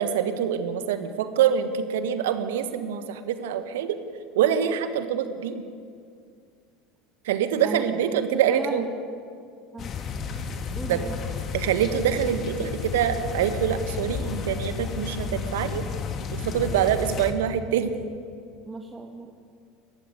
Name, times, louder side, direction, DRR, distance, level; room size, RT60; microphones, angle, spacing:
voice 1, 0.0-4.0 4.3-5.6 7.2-8.9 10.9-11.0 11.5-15.8 16.4-17.9, right 9 dB, 70° right, 9 dB, 1.5 m, -25 dB
voice 2, 8.3-8.8 9.7-9.9 10.8-11.2 18.7-19.3, right 3 dB, 20° right, 2 dB, 2.0 m, -35 dB
sound 1, 9.8-17.3, left 5 dB, 40° left, 2.5 m, -32 dB
20.5 x 15.0 x 9.7 m, 2.3 s
hypercardioid pair, 75°, 0 cm